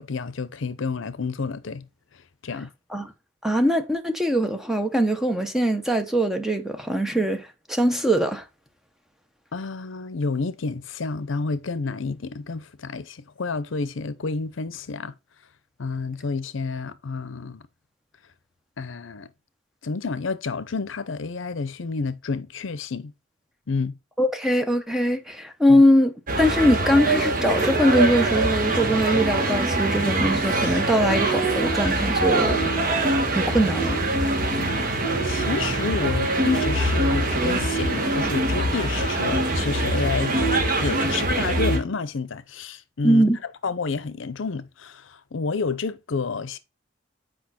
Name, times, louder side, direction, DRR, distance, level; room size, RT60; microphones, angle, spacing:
voice 1, 0.0-1.9 2.4-2.7 9.5-15.1 15.8-17.6 18.8-19.3 19.8-23.1 23.7-24.0 25.7-25.8 34.6-34.9 35.2-40.4 40.8-43.3 43.6-46.6, left 4 dB, 75° left, 0.6 m, -29 dB
voice 2, 3.4-8.4 24.2-26.1 26.4-32.6 33.3-34.0 34.2-34.3 43.0-43.4, equal, ahead, 0.9 m, -21 dB
sound 1, 26.3-41.8, right 2 dB, 45° right, 1.7 m, -23 dB
8.4 x 5.0 x 4.2 m
head